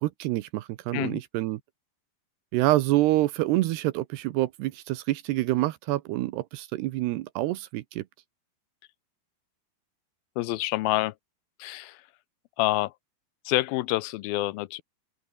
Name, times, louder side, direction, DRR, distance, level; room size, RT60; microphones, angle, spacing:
voice 1, 0.0-1.6 2.5-8.0, right 17 dB, 80° right, 2.9 m, -27 dB
voice 2, 10.4-11.1 11.6-12.0 12.6-12.9 13.5-14.8, left 18 dB, 80° left, 2.3 m, -27 dB
open air
omnidirectional pair, 4.8 m